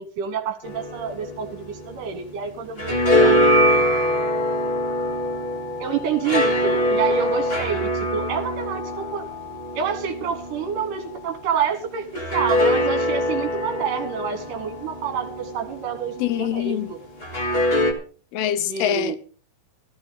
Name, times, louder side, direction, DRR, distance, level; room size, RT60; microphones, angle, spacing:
voice 1, 0.0-3.5 5.8-9.3 9.7-17.0 18.7-19.2, right 7 dB, 65° right, 2.8 m, -28 dB
sound 1, 0.6-2.3 2.6-11.3 12.1-16.2 17.2-17.9, left 1 dB, 20° left, 1.5 m, -23 dB
voice 2, 16.2-16.9 18.3-19.2, left 11 dB, 85° left, 2.9 m, -24 dB
15.0 x 14.0 x 4.0 m
omnidirectional pair, 4.4 m